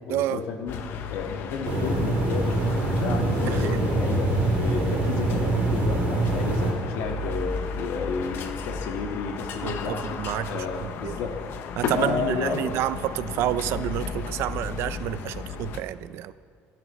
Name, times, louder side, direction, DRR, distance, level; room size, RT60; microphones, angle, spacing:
voice 1, 0.1-0.8 1.1-10.0 10.4-11.4 11.9-12.7, left 5 dB, 80° left, 3 dB, 1.7 m, -31 dB
sound 1, 0.7-15.8, left 6 dB, 55° left, 0.9 m, -34 dB
sound 2, 1.6-6.7, right 2 dB, 50° right, 3.9 m, -24 dB
voice 2, 9.6-11.2 11.8-16.3, right 13 dB, 65° right, 14 dB, 0.5 m, -29 dB
24.5 x 11.0 x 3.2 m, 2.2 s
cardioid pair, 160°, 5 cm